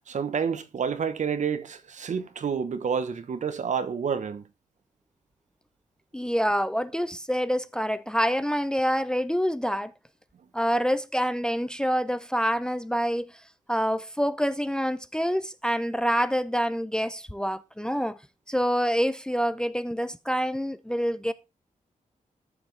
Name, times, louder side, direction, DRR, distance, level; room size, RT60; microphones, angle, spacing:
voice 1, 0.1-4.5, right 6 dB, 65° right, 1.0 m, -29 dB
voice 2, 6.1-9.9 10.5-13.3 13.7-18.2 18.5-21.3, equal, 5° left, 0.5 m, -26 dB
13.5 x 6.0 x 3.3 m
wide cardioid pair, 115°, 13 cm